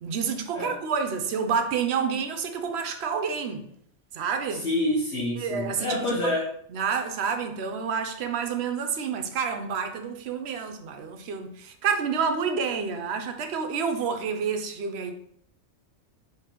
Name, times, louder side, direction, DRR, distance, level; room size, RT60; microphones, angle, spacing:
voice 1, 0.0-3.7 4.1-4.7 5.4-6.4 6.7-15.1, right 6 dB, 65° right, 0.8 m, -29 dB
voice 2, 4.6-6.5, left 1 dB, 65° left, 1.1 m, -27 dB
3.7 x 3.1 x 4.3 m
omnidirectional pair, 1.2 m